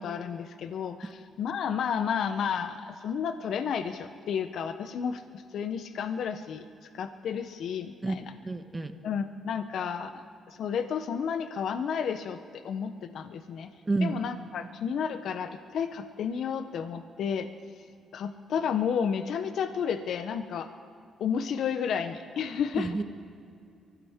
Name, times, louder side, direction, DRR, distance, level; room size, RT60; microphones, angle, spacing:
voice 1, 0.0-6.6 6.9-8.3 9.0-13.7 14.0-17.5 18.1-20.7 21.2-23.0, left 7 dB, 70° left, 9 dB, 0.6 m, -32 dB
voice 2, 8.4-8.9 13.9-14.2 22.7-23.0, right 3 dB, 20° right, 8 dB, 1.1 m, -29 dB
23.5 x 15.5 x 3.5 m, 2.4 s
cardioid pair, 90°, 0 cm